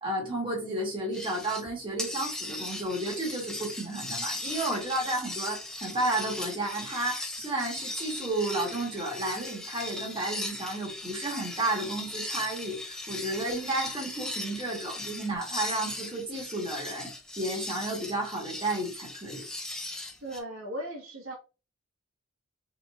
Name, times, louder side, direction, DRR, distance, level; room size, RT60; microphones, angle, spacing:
voice 1, 0.0-19.4, right 2 dB, 25° right, 1.6 m, -32 dB
sound 1, 1.1-1.7 2.0-20.4, left 2 dB, 5° left, 0.5 m, -38 dB
voice 2, 20.2-21.4, right 1 dB, 90° right, 1.7 m, -37 dB
4.1 x 4.1 x 2.5 m
head